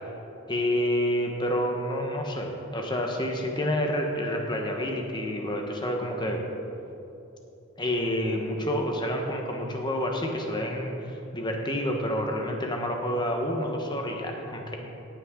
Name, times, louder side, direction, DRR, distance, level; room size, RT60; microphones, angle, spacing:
voice 1, 0.5-6.5 7.8-14.8, equal, 20° left, 2 dB, 1.2 m, -28 dB
18.0 x 8.8 x 3.8 m, 2.9 s
head